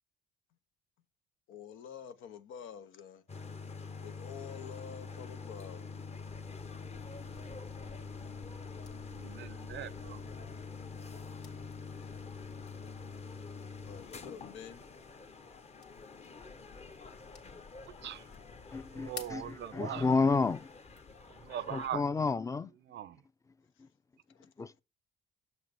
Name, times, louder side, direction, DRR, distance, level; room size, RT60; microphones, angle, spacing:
voice 1, 1.5-3.2 4.0-5.9 13.8-14.9 23.8-23.9 24.3-24.5, left 8 dB, 90° left, 0.8 m, -48 dB
sound 1, 3.3-21.9, left 4 dB, 30° left, 0.8 m, -46 dB
sound 2, 6.1-22.0, left 4 dB, 60° left, 1.8 m, -55 dB
voice 2, 9.1-10.2 17.9-18.3 18.9-20.1 21.3-22.0 22.9-23.2, right 11 dB, 65° right, 0.5 m, -41 dB
voice 3, 18.7-20.7 21.7-22.7 23.8-23.9 24.6-24.8, left 4 dB, 15° left, 0.4 m, -31 dB
6.9 x 6.2 x 3.4 m
cardioid pair, 90°, 20 cm